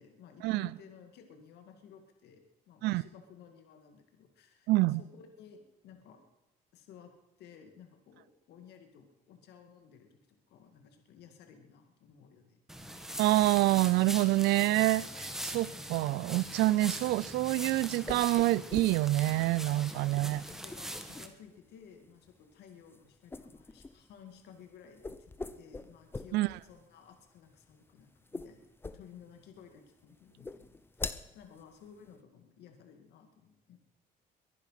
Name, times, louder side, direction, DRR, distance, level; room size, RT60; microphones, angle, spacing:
voice 1, 0.0-6.2 6.7-7.1 7.4-10.2 10.5-12.6 16.9-17.1 19.9-33.8, left 7 dB, 80° left, 5 dB, 2.3 m, -56 dB
voice 2, 4.7-5.0 13.2-20.4 26.3-26.5, right 18 dB, 85° right, 21 dB, 0.5 m, -27 dB
sound 1, 12.7-21.3, equal, ahead, 1.6 m, -42 dB
sound 2, 17.6-32.2, left 3 dB, 15° left, 0.8 m, -46 dB
23.0 x 10.0 x 5.8 m, 0.97 s
cardioid pair, 110°, 17 cm